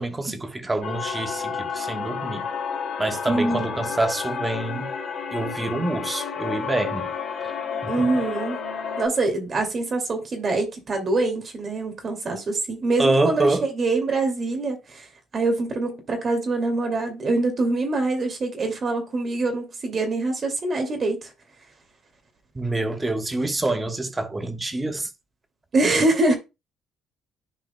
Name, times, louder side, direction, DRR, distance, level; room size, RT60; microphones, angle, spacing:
voice 1, 0.0-2.4 3.0-4.9 5.3-7.1 7.8-7.9 13.0-13.7 22.5-25.1, right 2 dB, 20° right, 1.2 m, -26 dB
sound 1, 0.8-9.1, left 6 dB, 65° left, 2.4 m, -31 dB
voice 2, 3.2-3.6 7.9-8.6 9.0-13.5 13.7-15.1 15.3-21.3 25.7-26.4, right 2 dB, 45° right, 2.3 m, -24 dB
10.5 x 4.8 x 2.2 m
supercardioid pair, 70°, 0 cm